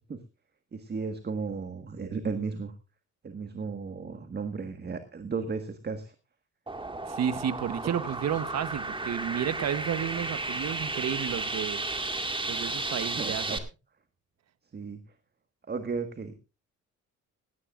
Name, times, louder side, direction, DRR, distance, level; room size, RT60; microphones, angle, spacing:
voice 1, 0.7-2.7 3.2-6.1 13.2-13.6 14.7-15.0 15.7-16.3, right 4 dB, 35° right, 9 dB, 1.6 m, -34 dB
sound 1, 6.7-13.6, right 2 dB, 15° right, 2.0 m, -33 dB
voice 2, 7.1-11.8 12.5-13.6, right 9 dB, 60° right, 15 dB, 1.1 m, -32 dB
17.5 x 16.0 x 2.5 m, 0.30 s
cardioid pair, 90°, 30 cm